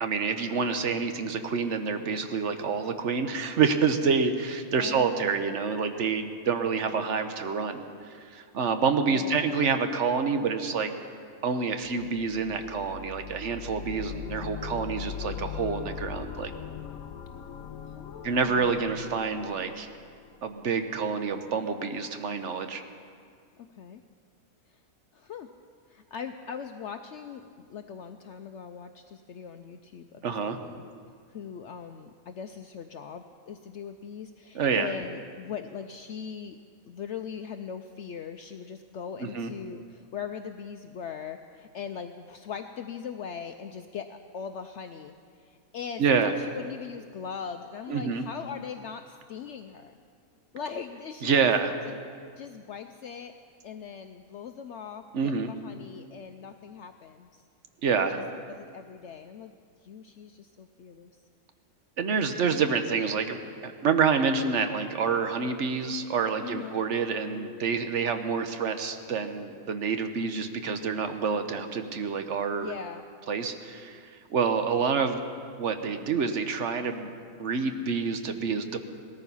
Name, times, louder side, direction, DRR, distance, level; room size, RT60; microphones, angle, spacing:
voice 1, 0.0-7.8 8.3-10.9 11.4-16.5 18.2-19.9 20.4-22.8 30.2-30.6 34.5-34.9 39.2-39.5 46.0-46.3 47.9-48.2 51.2-51.7 55.1-55.5 57.8-58.2 62.0-72.7 73.3-75.2 75.6-77.1 77.4-78.8, right 5 dB, 60° right, 7 dB, 1.2 m, -27 dB
voice 2, 4.8-5.5 9.0-9.6 17.8-18.8 23.7-24.0 24.7-24.8 25.1-25.5 25.9-30.8 31.3-36.6 36.8-49.9 50.5-51.5 51.9-52.0 52.4-53.3 53.6-57.4 58.0-59.6 59.8-61.1 66.4-66.8 72.5-73.0, left 7 dB, 65° left, 7 dB, 0.8 m, -40 dB
sound 1, 11.8-20.7, left 10 dB, 80° left, 1.2 m, -40 dB
18.0 x 14.0 x 5.5 m, 2.2 s
omnidirectional pair, 1.5 m